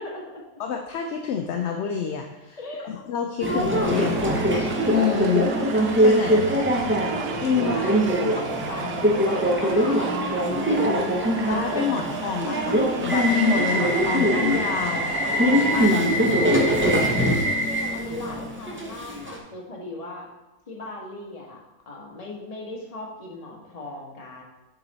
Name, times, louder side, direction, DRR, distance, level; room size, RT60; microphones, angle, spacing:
voice 1, 0.0-0.4 2.6-2.9 7.6-11.1 17.4-20.3 20.7-24.4, left 2 dB, 30° left, -2 dB, 1.1 m, -37 dB
voice 2, 0.6-2.6 2.8-5.5 6.0-6.5 7.4-7.7 11.4-15.2 15.5-16.1, left 7 dB, 65° left, 3 dB, 0.7 m, -28 dB
Subway metro underground, 3.4-19.4, equal, 20° right, 0.3 m, -22 dB
sound 1, 3.8-15.8, right 6 dB, 70° right, 0.6 m, -34 dB
6.8 x 3.9 x 4.0 m, 1.0 s
omnidirectional pair, 1.5 m